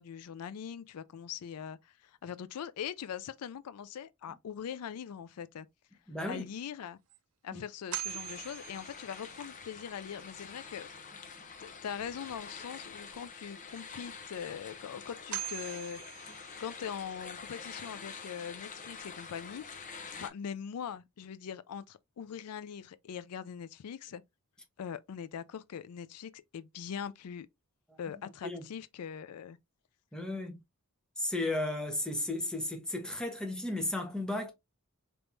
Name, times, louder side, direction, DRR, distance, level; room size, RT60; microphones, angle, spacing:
voice 1, 0.0-5.7 6.3-7.0 7.4-10.9 11.6-16.0 16.6-19.6 20.1-24.2 24.8-27.5 28.0-29.6, left 8 dB, 80° left, 0.4 m, -42 dB
voice 2, 6.1-6.4 7.5-7.6 28.4-28.6 30.1-30.6 31.2-34.5, left 1 dB, 5° left, 1.0 m, -34 dB
sound 1, 6.5-6.6 7.1-7.2 7.9-9.5 14.6-14.7 15.3-17.0, right 13 dB, 70° right, 0.5 m, -41 dB
sound 2, 8.0-20.3, left 5 dB, 35° left, 0.7 m, -47 dB
4.5 x 3.5 x 2.6 m
head